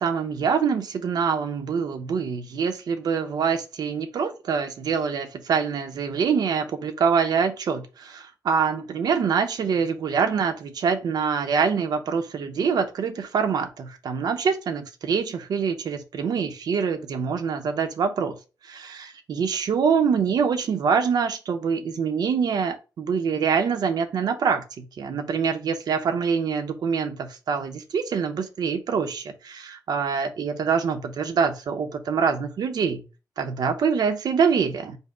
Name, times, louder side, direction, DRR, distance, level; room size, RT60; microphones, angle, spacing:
voice 1, 0.0-18.4 18.6-33.0 33.4-35.0, right 6 dB, 70° right, 0.7 m, -25 dB
5.3 x 2.1 x 4.8 m
wide cardioid pair, 115°, 7 cm